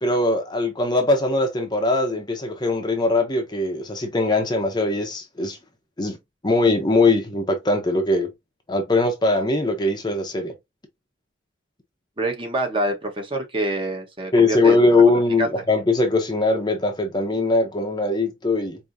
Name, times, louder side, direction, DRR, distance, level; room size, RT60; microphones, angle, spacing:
voice 1, 0.0-5.6 6.0-6.2 6.4-8.3 8.7-10.5 14.3-18.8, left 2 dB, 20° left, 0.7 m, -21 dB
voice 2, 12.2-15.0 15.4-15.5, right 1 dB, 25° right, 1.1 m, -26 dB
4.7 x 2.8 x 2.6 m
head